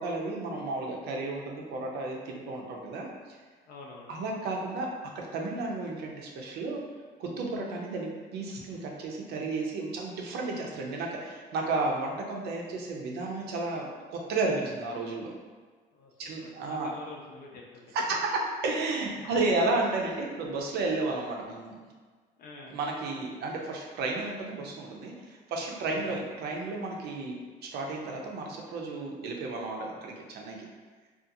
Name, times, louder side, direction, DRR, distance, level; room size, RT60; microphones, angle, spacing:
voice 1, 0.0-3.4 4.1-6.8 7.2-15.3 16.2-16.9 17.9-21.7 22.7-30.7, right 3 dB, 75° right, -1 dB, 0.5 m, -32 dB
voice 2, 3.7-4.3 15.9-17.8 19.1-19.5 22.4-22.8 25.9-26.2, left 3 dB, 60° left, -1 dB, 0.6 m, -48 dB
2.5 x 2.4 x 2.6 m, 1.5 s
cardioid pair, 110°, 17 cm